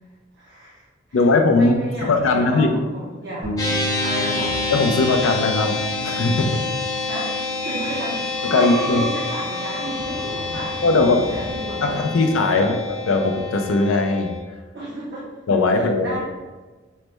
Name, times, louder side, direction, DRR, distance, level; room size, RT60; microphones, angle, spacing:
voice 1, 0.4-1.2 1.5-4.6 7.0-10.9 11.3-12.1 12.5-12.8 14.7-15.3 15.7-16.2, right 1 dB, 55° right, -6 dB, 0.5 m, -33 dB
voice 2, 1.1-2.7 4.7-5.7 6.0-6.6 8.4-9.1 10.8-11.3 11.8-12.7 13.1-14.3 15.5-16.2, left 3 dB, 85° left, 4 dB, 0.4 m, -19 dB
sound 1, 3.4-13.0, right 1 dB, 90° right, 0.9 m, -35 dB
sound 2, 3.6-14.4, left 3 dB, 15° left, 0.4 m, -28 dB
sound 3, 4.1-12.0, equal, 35° left, 0.8 m, -35 dB
3.2 x 2.0 x 3.1 m, 1.3 s
head